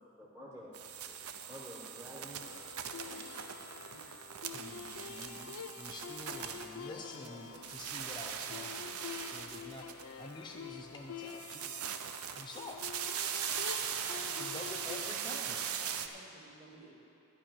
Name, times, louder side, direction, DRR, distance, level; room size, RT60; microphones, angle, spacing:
voice 1, 0.2-2.6 3.0-3.2 6.8-7.6, equal, 15° right, -5 dB, 0.9 m, -51 dB
sound 1, 0.7-7.3 7.5-10.4 11.2-16.1, right 8 dB, 80° right, 0.6 m, -40 dB
sound 2, 2.4-15.1, left 7 dB, 80° left, 0.6 m, -47 dB
voice 2, 3.7-4.1 14.2-16.9, right 2 dB, 40° right, -5 dB, 2.4 m, -57 dB
voice 3, 4.5-12.1 12.3-12.8 14.3-15.6, left 2 dB, 20° left, 2 dB, 0.5 m, -48 dB
12.0 x 5.4 x 8.8 m, 2.8 s
head